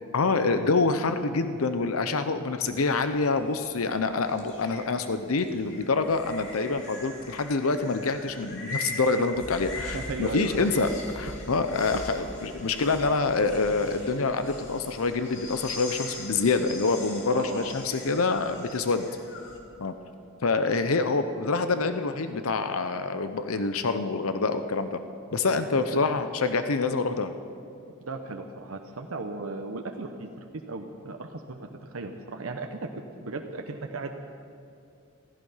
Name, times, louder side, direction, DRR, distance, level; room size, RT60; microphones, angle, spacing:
voice 1, 0.1-10.9 11.2-19.1 19.8-19.9 20.4-25.0 25.3-27.3, left 3 dB, 90° left, 9 dB, 0.7 m, -26 dB
sound 1, 2.6-19.6, left 2 dB, 65° left, 2.5 m, -41 dB
voice 2, 9.9-10.7 17.3-17.8 25.9-26.0 28.0-32.9 33.2-34.2, right 3 dB, 90° right, 4 dB, 0.9 m, -36 dB
15.5 x 14.5 x 5.6 m, 2.6 s
head